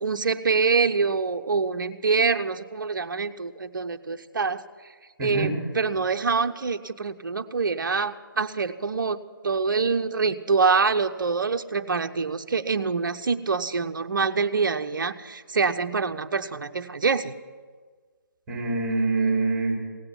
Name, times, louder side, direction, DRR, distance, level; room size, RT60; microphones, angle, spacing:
voice 1, 0.0-4.6 5.2-9.2 9.4-17.3, right 4 dB, 60° right, 8 dB, 0.8 m, -25 dB
voice 2, 5.2-5.5 18.5-19.8, right 3 dB, 15° right, -1 dB, 4.1 m, -25 dB
17.5 x 7.8 x 9.8 m, 1.5 s
figure-of-eight pair, 150°, 12 cm